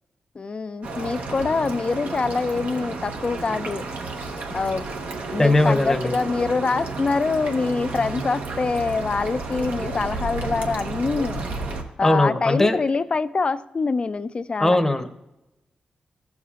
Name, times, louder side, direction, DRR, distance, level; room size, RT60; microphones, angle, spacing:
voice 1, 0.4-3.8 4.5-4.8 5.3-11.4 12.0-14.8, left 4 dB, 40° left, 12 dB, 0.4 m, -25 dB
sound 1, 0.8-11.8, right 3 dB, 85° right, 1.0 m, -32 dB
sound 2, 4.8-11.0, right 3 dB, 60° right, 0.8 m, -44 dB
voice 2, 5.4-6.1 12.0-12.8 14.6-15.1, left 2 dB, 15° left, 6 dB, 0.8 m, -19 dB
15.0 x 7.2 x 2.4 m, 0.96 s
cardioid pair, 70°, 3 cm